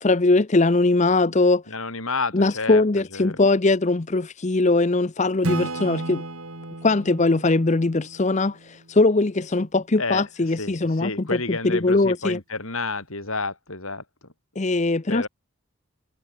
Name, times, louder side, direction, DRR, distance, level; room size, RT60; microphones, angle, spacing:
voice 1, 0.0-1.6 2.3-6.2 6.8-12.4 14.6-15.3, left 2 dB, 30° left, 0.6 m, -21 dB
voice 2, 1.7-2.8 3.1-3.4 10.0-10.3 10.6-14.0 15.1-15.3, left 3 dB, 70° left, 7.7 m, -30 dB
Acoustic guitar / Strum, 5.4-9.0, right 2 dB, 75° right, 4.0 m, -33 dB
head